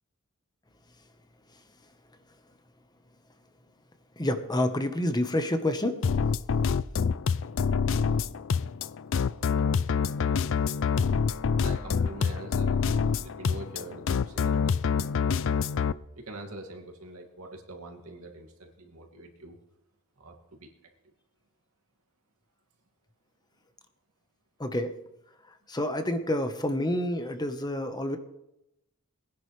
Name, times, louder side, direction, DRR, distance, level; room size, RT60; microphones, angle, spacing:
voice 1, 4.2-5.9 24.6-24.9 25.7-28.2, left 1 dB, 20° left, 8 dB, 1.1 m, -28 dB
sound 1, 6.0-15.9, left 6 dB, 60° left, 0.4 m, -26 dB
voice 2, 11.6-14.8 15.4-15.5 16.2-19.6 20.2-20.7, right 2 dB, 75° right, 2 dB, 2.3 m, -44 dB
20.5 x 10.5 x 3.3 m, 0.86 s
head